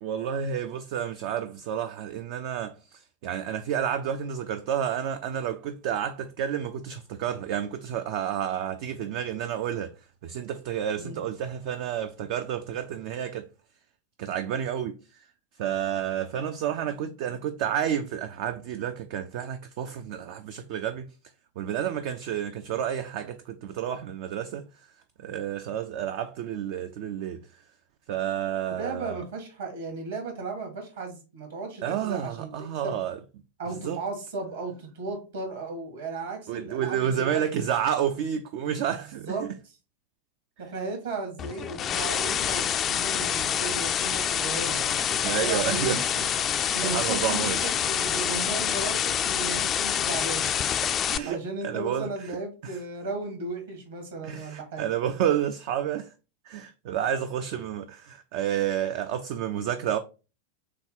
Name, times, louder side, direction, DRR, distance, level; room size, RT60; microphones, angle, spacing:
voice 1, 0.0-9.9 10.2-13.5 14.2-15.2 15.6-21.1 21.6-24.7 25.2-27.4 28.1-29.2 31.8-33.2 33.8-34.0 36.5-39.5 45.2-46.3 46.8-47.6 50.8-51.4 51.6-52.4 52.6-52.8 54.2-56.1 56.5-60.0, right 9 dB, 50° right, 0.3 m, -30 dB
voice 2, 28.8-32.5 32.8-33.0 33.6-37.6 38.9-39.7 40.6-46.0 46.7-50.5 51.2-54.9, right 3 dB, 65° right, 1.7 m, -35 dB
sound 1, 41.4-51.2, left 9 dB, 25° left, 0.3 m, -27 dB
6.6 x 2.2 x 3.6 m
figure-of-eight pair, 90°, 0 cm